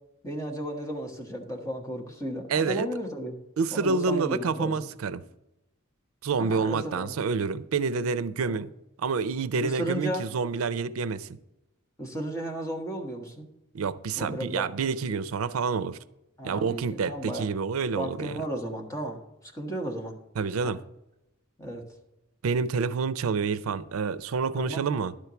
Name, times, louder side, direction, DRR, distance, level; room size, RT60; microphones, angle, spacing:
voice 1, 0.2-3.3 3.7-4.9 6.4-7.1 8.4-8.6 9.6-10.3 12.0-13.5 14.2-14.7 16.4-17.5 17.9-20.2 20.6-20.7 21.6-21.8 24.6-24.8, right 1 dB, 15° left, 1.4 m, -34 dB
voice 2, 2.5-2.9 3.6-5.2 6.2-8.7 9.0-11.3 13.7-16.0 16.4-18.4 20.4-20.8 22.4-25.1, right 5 dB, 85° right, 0.5 m, -28 dB
11.5 x 4.6 x 6.9 m
head